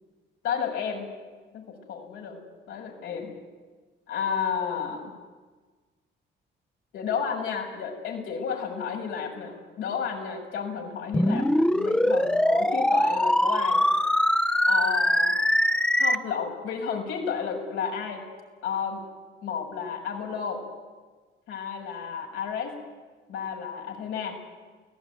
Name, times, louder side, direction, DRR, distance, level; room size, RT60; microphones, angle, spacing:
voice 1, 0.4-1.1 1.5-2.4 2.7-3.3 4.1-5.1 6.9-13.9 14.7-15.4 16.0-18.3 18.6-19.0 19.4-20.6 21.5-22.7 23.3-24.4, left 6 dB, 90° left, 1 dB, 6.9 m, -32 dB
sound 1, 11.1-16.1, left 1 dB, 5° left, 1.0 m, -22 dB
29.5 x 19.0 x 9.5 m, 1.4 s
cardioid pair, 90°, 20 cm